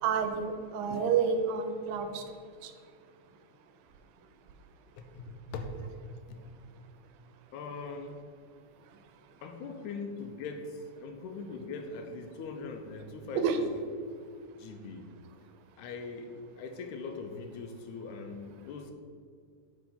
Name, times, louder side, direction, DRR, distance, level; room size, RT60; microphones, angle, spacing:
voice 1, 0.0-2.2 2.6-2.7 13.4-13.6, right 6 dB, 85° right, 6 dB, 2.0 m, -29 dB
voice 2, 5.0-5.8 6.3-6.5 7.5-8.2 9.4-13.7 14.5-15.1 15.8-18.9, left 4 dB, 80° left, 5 dB, 2.0 m, -41 dB
6.0 x 4.5 x 5.4 m, 2.2 s
omnidirectional pair, 3.5 m